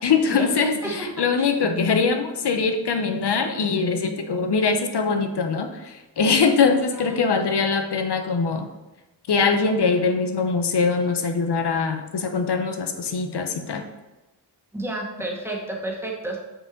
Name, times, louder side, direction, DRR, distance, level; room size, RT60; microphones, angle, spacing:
voice 1, 0.0-8.7 9.3-13.9, left 4 dB, 65° left, 6 dB, 0.9 m, -22 dB
voice 2, 14.7-16.4, right 2 dB, 5° right, -2 dB, 1.8 m, -30 dB
6.0 x 5.2 x 5.2 m, 1.1 s
wide cardioid pair, 95°, 43 cm